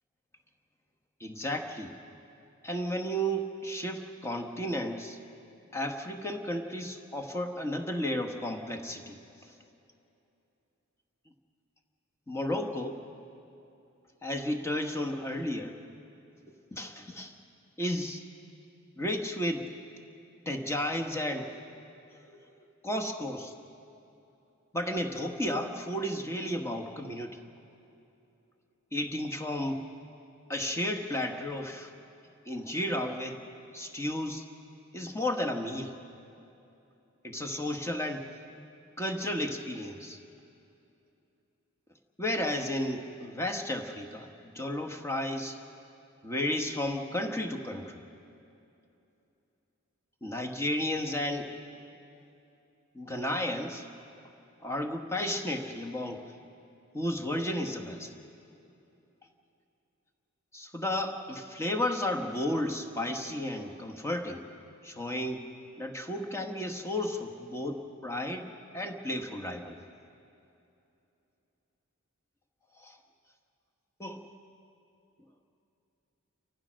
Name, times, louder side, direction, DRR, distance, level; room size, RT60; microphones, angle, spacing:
voice 1, 1.2-1.9 2.6-5.2 5.7-9.2 12.3-13.0 14.2-15.8 16.7-17.3 17.8-18.2 19.0-19.7 20.5-21.5 22.3-22.4 22.8-23.5 24.7-27.4 28.9-29.8 30.5-31.9 32.5-33.4 33.7-34.4 34.9-35.9 37.2-38.3 39.0-40.2 42.2-45.6 46.2-48.0 50.2-51.5 52.9-53.8 54.6-56.2 56.9-58.1 60.5-64.4 64.8-65.4 65.8-68.5 68.7-69.8 72.8-72.9 74.0-74.2, left 1 dB, 15° left, 3 dB, 1.3 m, -33 dB
29.0 x 14.5 x 6.4 m, 2.8 s
head